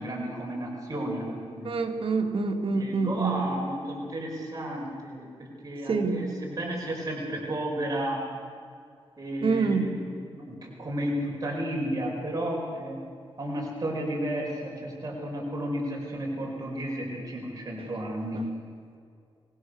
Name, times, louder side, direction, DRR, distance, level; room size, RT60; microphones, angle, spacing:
voice 1, 0.0-1.7 2.7-8.3 9.2-13.0 13.4-18.5, right 1 dB, 35° right, -1 dB, 5.2 m, -33 dB
voice 2, 1.6-3.4 5.9-6.2 9.4-9.9, right 4 dB, 65° right, 2 dB, 2.7 m, -26 dB
26.0 x 19.0 x 6.5 m, 2.4 s
cardioid pair, 85°, 10 cm